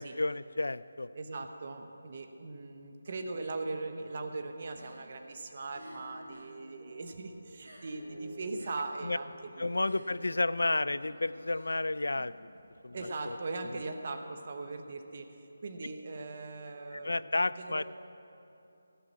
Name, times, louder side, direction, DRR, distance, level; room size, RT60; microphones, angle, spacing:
voice 1, 0.0-1.1 9.0-9.2 9.6-12.5 12.8-13.0 13.2-13.4 16.9-17.8, left 2 dB, 85° left, 17 dB, 0.3 m, -31 dB
voice 2, 1.1-10.2 12.9-15.4 15.6-17.8, right 3 dB, 40° right, 6 dB, 0.9 m, -40 dB
sound 1, 4.7-6.6 6.8-8.2 8.4-13.9, right 1 dB, 80° right, 3.1 m, -58 dB
sound 2, 5.7-11.8, right 1 dB, 5° left, 2.2 m, -53 dB
15.0 x 5.7 x 8.4 m, 2.8 s
figure-of-eight pair, 165°, 0 cm